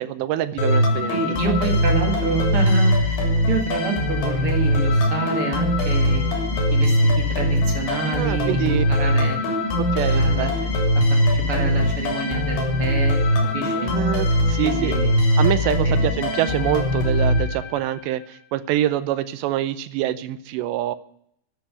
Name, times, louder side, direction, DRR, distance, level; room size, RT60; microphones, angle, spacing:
voice 1, 0.0-1.2 8.1-8.8 9.8-10.5 13.7-15.0 15.4-21.0, right 13 dB, 80° right, 12 dB, 2.9 m, -25 dB
sound 1, 0.6-18.1, left 1 dB, 90° left, 5.6 m, -21 dB
voice 2, 1.1-3.2 3.5-6.2 6.7-9.4 10.0-10.5 11.1-13.2 13.5-13.9 14.6-15.1 15.8-16.0, right 3 dB, 45° right, 1 dB, 2.0 m, -28 dB
11.5 x 8.3 x 8.6 m, 0.69 s
omnidirectional pair, 5.1 m